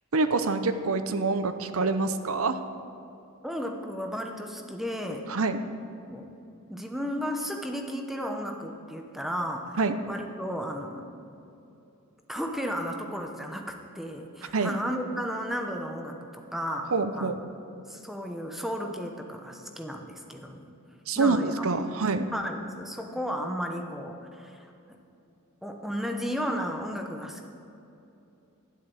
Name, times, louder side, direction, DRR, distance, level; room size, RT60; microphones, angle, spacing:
voice 1, 0.1-2.6 5.3-5.6 9.8-9.9 14.5-14.8 16.9-17.4 21.1-22.3, right 3 dB, 70° right, 10 dB, 0.7 m, -26 dB
voice 2, 3.4-5.3 6.1-6.3 6.7-9.8 10.1-11.0 12.3-17.4 17.9-20.7 21.2-21.7 22.3-25.0 25.6-27.5, equal, ahead, 3 dB, 0.9 m, -34 dB
12.5 x 7.5 x 7.6 m, 2.8 s
head